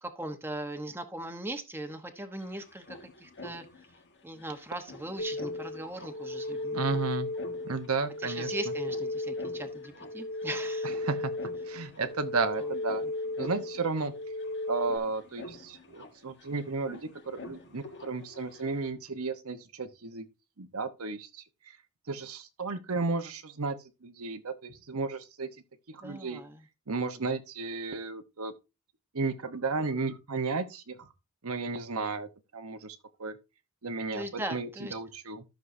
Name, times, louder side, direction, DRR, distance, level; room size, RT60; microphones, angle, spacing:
voice 1, 0.0-3.6 4.2-6.8 8.2-10.9 26.0-26.6 34.1-34.9, right 1 dB, 10° right, 1.0 m, -39 dB
sound 1, 2.1-18.9, left 2 dB, 55° left, 1.5 m, -50 dB
sound 2, 5.2-15.0, left 2 dB, 80° left, 1.4 m, -35 dB
voice 2, 6.7-7.3 7.6-8.7 10.8-11.3 11.7-13.0 13.4-14.1 14.7-20.2 20.6-21.8 22.1-23.8 24.0-25.5 25.9-26.4 26.9-28.5 29.1-31.1 31.4-32.3 32.5-33.4 33.8-35.4, right 4 dB, 75° right, 1.0 m, -33 dB
13.0 x 6.4 x 2.7 m
head